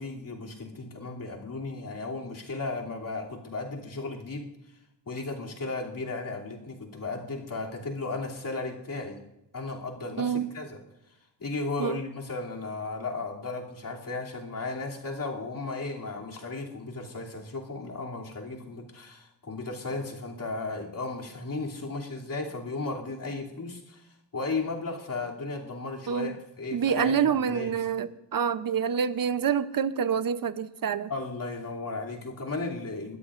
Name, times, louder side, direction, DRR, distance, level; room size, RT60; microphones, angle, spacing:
voice 1, 0.0-4.5 5.1-9.2 9.5-10.8 11.4-27.7 31.1-33.2, left 3 dB, 50° left, -2 dB, 2.9 m, -35 dB
voice 2, 10.2-10.5 11.8-12.0 26.1-26.3 26.7-31.1, right 7 dB, 55° right, 13 dB, 0.8 m, -27 dB
21.0 x 13.5 x 2.5 m, 0.88 s
wide cardioid pair, 85°, 41 cm